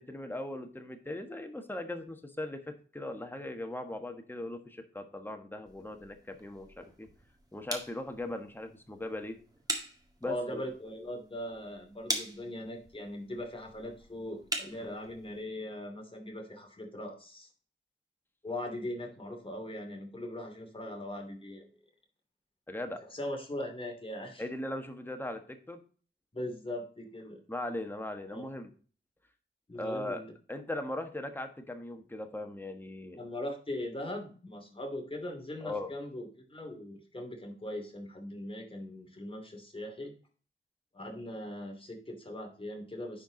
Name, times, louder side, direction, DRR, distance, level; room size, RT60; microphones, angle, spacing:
voice 1, 0.0-7.1 7.5-9.4 10.2-10.6 14.7-14.9 22.7-23.0 24.4-25.8 27.5-28.7 29.7-30.2 30.5-33.2 35.6-35.9, left 1 dB, 10° left, 6 dB, 1.4 m, -39 dB
sound 1, 5.7-15.4, right 1 dB, 20° right, 2.0 m, -42 dB
voice 2, 10.2-17.5 18.4-21.7 23.1-24.4 26.3-27.4 28.3-28.4 29.7-30.3 33.1-40.1 40.9-43.2, left 1 dB, 25° left, 2 dB, 2.6 m, -40 dB
10.0 x 4.7 x 3.9 m, 0.40 s
wide cardioid pair, 80°, 21 cm